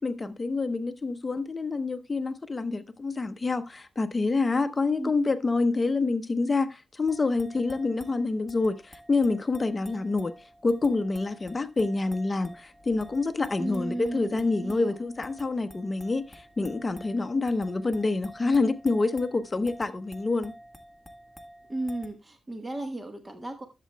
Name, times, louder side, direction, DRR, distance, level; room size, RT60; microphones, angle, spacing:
voice 1, 0.0-10.3 10.6-20.5, left 3 dB, 30° left, 0.7 m, -27 dB
sound 1, 7.1-22.1, equal, ahead, 1.3 m, -50 dB
voice 2, 13.6-15.0 21.7-23.7, right 1 dB, 20° right, 1.1 m, -34 dB
14.5 x 7.6 x 2.2 m
cardioid pair, 90°, 0 cm